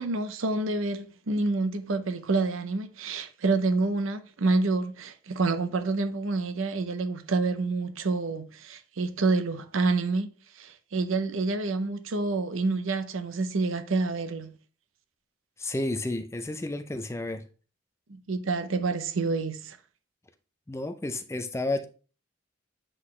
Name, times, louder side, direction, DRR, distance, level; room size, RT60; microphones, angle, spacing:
voice 1, 0.0-10.3 10.6-14.5 18.1-19.8, right 3 dB, 85° right, 0.7 m, -28 dB
voice 2, 15.6-17.4 20.7-21.9, left 2 dB, 15° left, 0.4 m, -31 dB
7.9 x 3.9 x 3.2 m
head